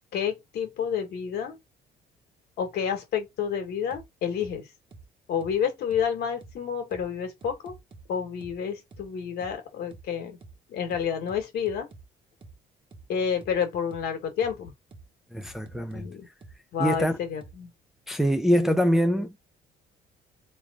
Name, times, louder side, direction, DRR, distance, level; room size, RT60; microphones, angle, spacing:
voice 1, 0.1-1.6 2.6-4.7 5.3-7.7 8.1-10.4 10.7-11.9 13.1-14.7 15.9-16.3 16.7-17.7, left 7 dB, 70° left, 1.6 m, -29 dB
sound 1, 3.9-4.0 4.4-4.5 4.9-5.0 5.4-5.5 5.9-6.0 6.4-6.5 6.9-7.0 7.4-8.0 8.4-8.5 8.9-9.0 9.4-9.5 9.9-10.0 10.4-10.5 10.9-12.0 12.4-12.5 12.9-13.0 13.4-13.5 13.9-14.0 14.4-14.5 14.9-15.0 15.4-16.0 16.4-16.5 16.9-17.0 17.4-17.5, right 3 dB, 30° right, 1.3 m, -47 dB
voice 2, 15.3-16.1 16.8-17.1 18.1-19.4, equal, ahead, 0.5 m, -24 dB
3.7 x 3.3 x 3.5 m
cardioid pair, 110°, 17 cm